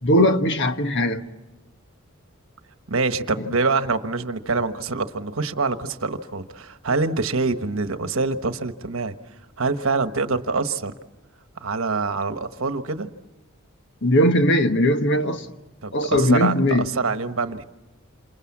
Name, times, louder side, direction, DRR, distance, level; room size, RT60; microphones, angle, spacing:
voice 1, 0.0-1.2 14.0-15.4 15.9-16.9, equal, 60° left, 1.4 m, -19 dB
voice 2, 2.9-9.1 9.6-10.9 11.6-13.1 15.8-17.6, right 3 dB, 70° right, 1.2 m, -25 dB
27.5 x 27.5 x 7.3 m
head